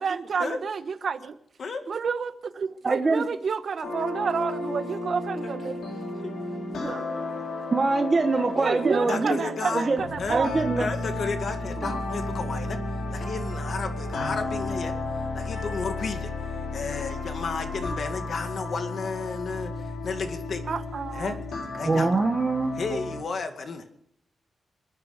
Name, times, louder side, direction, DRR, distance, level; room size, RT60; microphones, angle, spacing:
voice 1, 0.0-1.4 1.9-5.8 6.8-7.1 8.3-10.5 10.8-11.0 11.8-12.0 14.5-14.6 20.7-21.4, right 6 dB, 55° right, 1.2 m, -30 dB
voice 2, 2.8-3.3 7.7-9.4 9.7-10.0 10.3-10.8 21.8-23.0, right 3 dB, 30° right, 1.3 m, -24 dB
sound 1, 3.8-23.2, left 2 dB, 80° left, 4.5 m, -33 dB
voice 3, 6.9-7.4 9.1-9.9 10.2-10.4 10.8-12.8 13.1-14.9 15.3-16.3 16.7-20.6 21.1-21.4 21.8-22.1 22.8-23.8, left 4 dB, 55° left, 2.1 m, -32 dB
28.5 x 9.7 x 5.2 m
wide cardioid pair, 135°, 0 cm